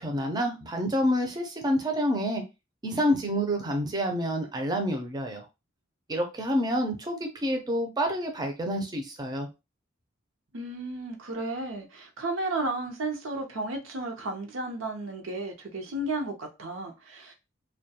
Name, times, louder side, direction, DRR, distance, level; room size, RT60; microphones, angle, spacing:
voice 1, 0.0-2.4 2.8-5.5 6.1-9.5, equal, 20° right, 0.5 m, -28 dB
voice 2, 10.5-17.3, right 2 dB, 85° right, 0.7 m, -33 dB
2.2 x 2.2 x 2.7 m
head